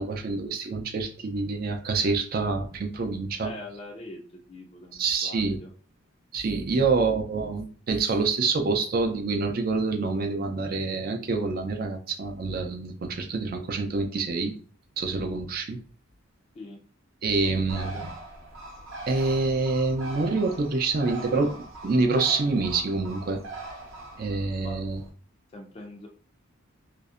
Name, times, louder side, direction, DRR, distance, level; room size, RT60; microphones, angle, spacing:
voice 1, 0.0-3.5 5.0-5.6 6.3-14.5 15.0-15.8 17.2-18.1 19.1-21.5 21.8-23.4 24.2-25.0, right 3 dB, 45° right, 4 dB, 0.4 m, -26 dB
voice 2, 3.4-5.7 6.8-6.9 16.5-16.8 17.4-18.0 24.6-24.8 25.5-26.1, left 2 dB, 30° left, 1 dB, 0.3 m, -42 dB
Bird, 17.7-25.1, right 2 dB, 85° right, 0.8 m, -41 dB
2.6 x 2.1 x 2.4 m, 0.43 s
head